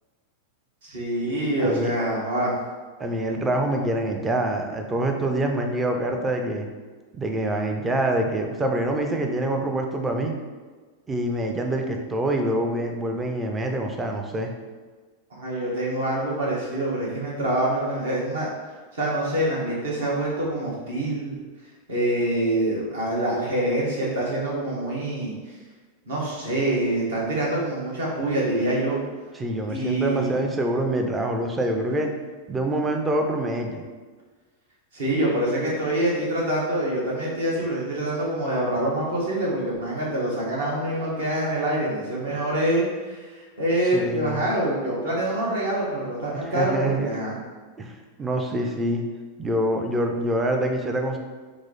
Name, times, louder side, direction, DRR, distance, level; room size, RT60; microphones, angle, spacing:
voice 1, 0.8-2.5 15.3-18.5 18.9-21.3 21.9-25.3 26.1-29.0 29.7-30.3 34.9-47.3, right 1 dB, 60° right, -4 dB, 1.2 m, -25 dB
voice 2, 1.6-1.9 3.0-6.7 7.1-10.4 11.1-14.5 29.3-32.1 32.5-33.9 43.9-44.4 46.4-47.1 47.8-49.0 49.4-51.2, right 1 dB, 15° right, 3 dB, 0.5 m, -25 dB
4.6 x 2.0 x 3.9 m, 1.4 s
figure-of-eight pair, 90°, 0 cm